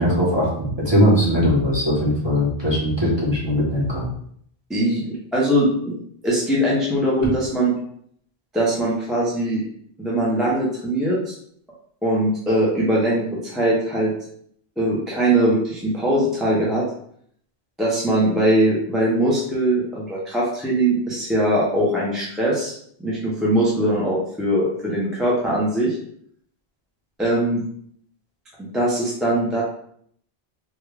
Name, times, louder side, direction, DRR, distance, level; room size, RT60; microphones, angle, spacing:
voice 1, 0.0-4.1, equal, 25° right, -6 dB, 1.2 m, -20 dB
voice 2, 4.7-5.9 6.2-7.7 8.5-9.6 10.0-11.3 12.0-14.1 14.8-16.8 17.8-22.7 23.0-26.0 27.2-27.6 28.6-29.6, right 1 dB, ahead, -6 dB, 0.6 m, -21 dB
3.6 x 2.3 x 3.2 m, 0.66 s
omnidirectional pair, 1.1 m